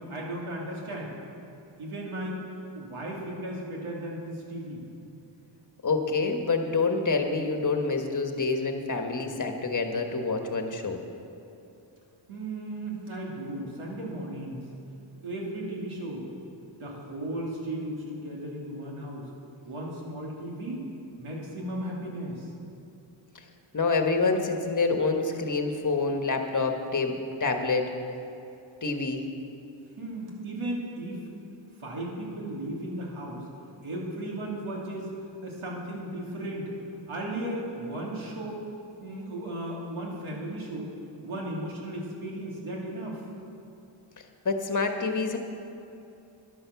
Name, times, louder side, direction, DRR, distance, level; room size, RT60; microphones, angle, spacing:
voice 1, 0.1-1.1 1.8-2.5 2.7-4.8 12.3-14.6 15.2-16.3 16.8-19.3 19.6-20.9 21.2-22.5 30.0-31.3 31.8-33.5 33.8-35.1 35.4-36.7 37.1-38.6 39.0-40.9 41.2-43.2, right 1 dB, 85° right, -3 dB, 2.9 m, -35 dB
voice 2, 5.8-11.0 23.7-27.9 28.8-29.2 44.4-45.4, left 4 dB, 40° left, 4 dB, 1.3 m, -27 dB
11.0 x 10.5 x 7.0 m, 2.8 s
wide cardioid pair, 130°, 48 cm